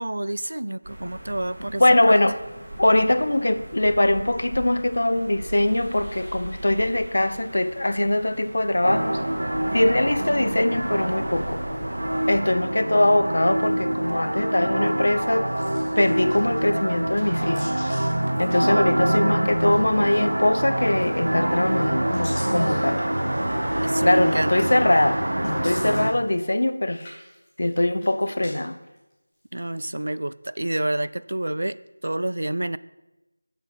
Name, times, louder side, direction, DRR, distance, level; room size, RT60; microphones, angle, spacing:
voice 1, 0.0-2.2 23.8-24.7 29.5-31.8 32.0-32.8, right 1 dB, 75° right, 17 dB, 0.3 m, -28 dB
sound 1, 0.8-12.3, right 1 dB, 35° right, 3.4 m, -39 dB
voice 2, 1.8-2.4 2.8-9.2 9.7-11.6 12.3-15.5 16.0-17.7 18.4-23.0 24.0-27.1 27.6-28.8, left 1 dB, 65° left, 11 dB, 0.7 m, -22 dB
sound 2, 8.8-26.1, right 1 dB, 90° right, 1.0 m, -25 dB
sound 3, 15.4-16.7 17.1-19.1 19.5-20.1 20.9-21.4 21.8-23.5 24.1-24.2 25.4-26.6 26.9-28.5 28.8-29.6, left 1 dB, 15° left, 2.5 m, -44 dB
7.1 x 6.8 x 5.9 m, 1.0 s
figure-of-eight pair, 175°, 0 cm